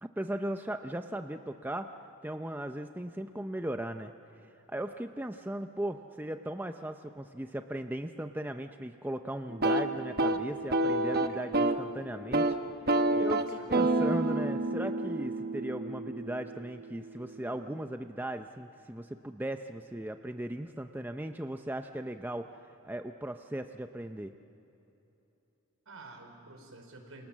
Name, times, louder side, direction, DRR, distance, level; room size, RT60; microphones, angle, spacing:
voice 1, 0.0-1.9 2.2-4.1 4.7-12.6 13.1-22.5 22.8-24.3, right 1 dB, 10° right, 6 dB, 0.6 m, -37 dB
sound 1, 9.5-11.9 12.2-12.6 12.9-16.7, right 2 dB, 45° right, 1.1 m, -29 dB
voice 2, 13.3-13.9 25.8-27.3, right 2 dB, 70° right, 3 dB, 4.9 m, -50 dB
29.0 x 27.5 x 7.4 m, 2.9 s
head